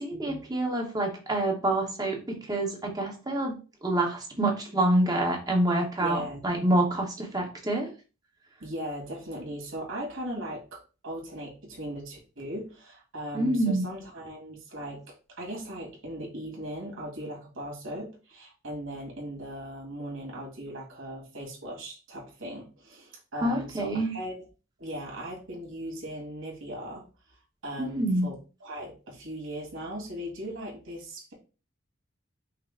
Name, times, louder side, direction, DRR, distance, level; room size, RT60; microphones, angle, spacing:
voice 1, 0.0-3.5 3.8-7.9 13.3-13.8 23.4-24.1 27.8-28.3, right 1 dB, 20° right, 1 dB, 1.1 m, -27 dB
voice 2, 6.0-6.4 8.6-24.3 24.8-27.1 27.6-31.3, equal, 75° right, -1 dB, 2.0 m, -38 dB
5.7 x 2.2 x 3.6 m, 0.33 s
head